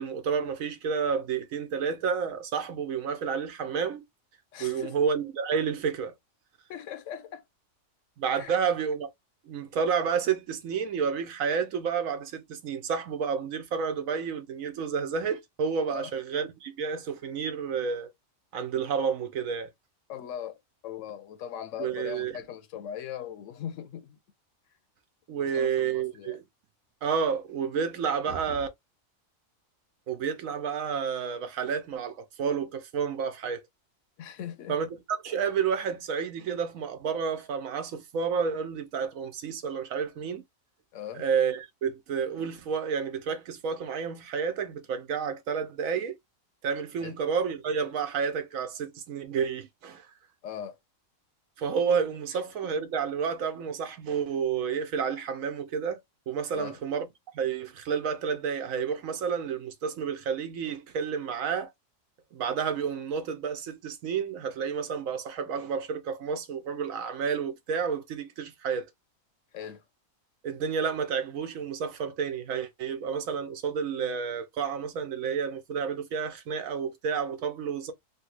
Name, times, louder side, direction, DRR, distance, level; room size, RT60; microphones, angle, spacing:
voice 1, 0.0-4.0 4.6-6.1 8.2-9.1 9.4-18.1 18.5-19.7 21.8-22.4 25.3-26.4 27.0-28.7 30.1-33.6 34.7-40.4 41.1-46.2 46.6-50.1 51.6-56.0 56.3-57.1 57.3-61.7 62.3-68.9 70.4-77.9, right 6 dB, 80° right, 1.1 m, -30 dB
voice 2, 4.5-5.0 6.7-7.4 8.3-8.6 15.9-16.1 20.1-20.6 20.8-24.2 25.4-26.4 34.2-34.8 40.9-41.3 47.0-47.1 50.4-50.8 52.3-52.7 56.5-56.8 69.5-69.8, left 9 dB, 70° left, 0.9 m, -40 dB
3.2 x 2.4 x 3.1 m
omnidirectional pair, 1.4 m